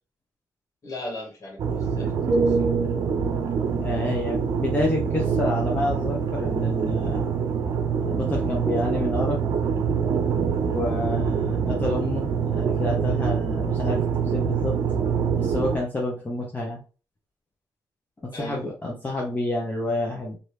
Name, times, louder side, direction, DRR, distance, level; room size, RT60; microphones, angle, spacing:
voice 1, 0.8-2.6 18.3-18.7, left 1 dB, 45° left, -1 dB, 1.5 m, -37 dB
sound 1, 1.6-15.8, right 6 dB, 65° right, 0.6 m, -25 dB
sound 2, 2.3-6.3 6.6-6.9, right 3 dB, 20° right, 0.9 m, -30 dB
voice 2, 3.8-7.2 8.0-9.4 10.7-14.8 15.3-16.8 18.2-20.4, left 2 dB, 20° left, -2 dB, 0.8 m, -29 dB
2.9 x 2.6 x 3.4 m, 0.35 s
cardioid pair, 90°, 7 cm